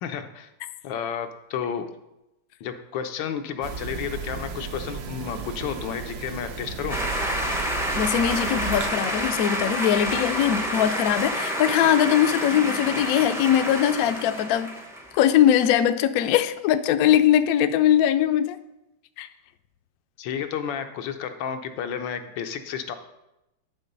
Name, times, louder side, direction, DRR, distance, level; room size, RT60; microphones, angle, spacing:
voice 1, 0.0-0.5 0.8-1.9 2.6-7.0 20.2-22.9, left 8 dB, 90° left, 1.5 m, -31 dB
sound 1, 3.6-8.9, right 6 dB, 65° right, 1.2 m, -34 dB
sound 2, 6.9-15.2, equal, 5° right, 0.3 m, -29 dB
voice 2, 7.9-14.8 15.1-18.6 19.2-19.3, left 10 dB, 70° left, 0.9 m, -21 dB
11.5 x 3.8 x 5.3 m
omnidirectional pair, 2.0 m